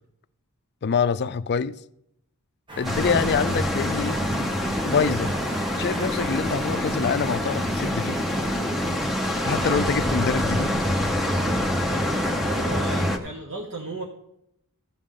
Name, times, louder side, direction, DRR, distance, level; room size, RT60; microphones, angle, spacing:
voice 1, 0.8-1.8 2.8-4.2 4.9-5.4 5.8-8.2 9.4-10.8, left 6 dB, 50° left, 0.4 m, -25 dB
sound 1, 2.7-9.1, right 1 dB, 20° right, 1.2 m, -42 dB
sound 2, 2.8-13.2, equal, ahead, 0.9 m, -25 dB
voice 2, 12.4-14.0, right 2 dB, 60° right, 1.0 m, -34 dB
15.0 x 7.0 x 3.7 m
head